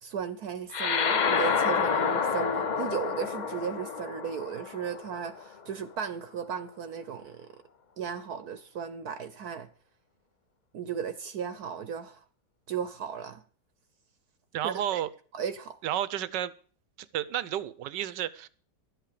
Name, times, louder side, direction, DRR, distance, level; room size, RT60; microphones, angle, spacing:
voice 1, 0.0-7.5 8.0-9.7 10.7-12.2 12.7-13.4 14.6-15.0 15.3-15.8, right 7 dB, 65° right, 1.3 m, -35 dB
sound 1, 0.7-5.5, left 6 dB, 60° left, 0.4 m, -28 dB
voice 2, 14.5-15.1 15.8-16.5 17.1-18.5, right 11 dB, 85° right, 1.4 m, -31 dB
12.5 x 8.3 x 6.7 m
omnidirectional pair, 1.9 m